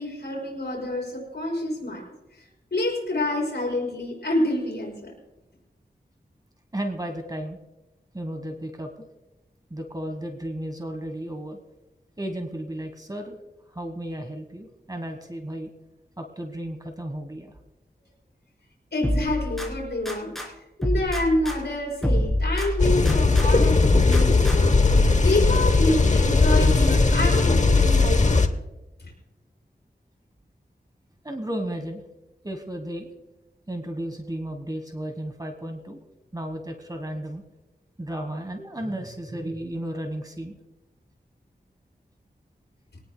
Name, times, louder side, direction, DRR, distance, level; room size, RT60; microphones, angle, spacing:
voice 1, 0.0-2.0 2.7-5.1 18.9-20.4 20.8-24.8 25.2-28.5 29.0-29.1, left 1 dB, 75° left, -1 dB, 5.0 m, -27 dB
voice 2, 6.7-7.6 8.1-9.1 9.7-11.6 12.2-13.4 13.7-15.7 16.2-17.5 31.2-32.0 32.4-33.1 33.7-36.0 36.3-37.4 38.0-40.6, right 1 dB, 20° right, 5 dB, 1.3 m, -33 dB
sound 1, 19.0-20.5 20.8-23.5 23.8-24.9, equal, ahead, 3.3 m, -27 dB
sound 2, 22.8-28.5, left 3 dB, 45° left, 0.9 m, -18 dB
22.0 x 18.0 x 2.2 m, 1.0 s
wide cardioid pair, 75°, 17 cm